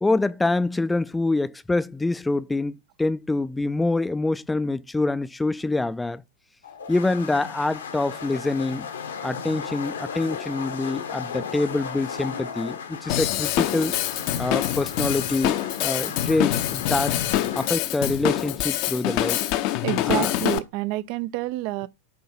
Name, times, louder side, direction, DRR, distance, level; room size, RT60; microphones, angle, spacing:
voice 1, 0.0-6.2 6.9-8.9 9.2-14.0 14.4-17.1 17.6-19.5 20.0-20.4, left 2 dB, 10° left, 0.5 m, -25 dB
sound 1, 6.6-17.7, left 6 dB, 65° left, 1.3 m, -35 dB
Drum kit / Drum, 13.1-20.6, left 13 dB, 45° left, 0.8 m, -25 dB
voice 2, 19.8-21.9, right 17 dB, 45° right, 0.6 m, -28 dB
9.4 x 3.6 x 7.0 m
figure-of-eight pair, 90°, 0 cm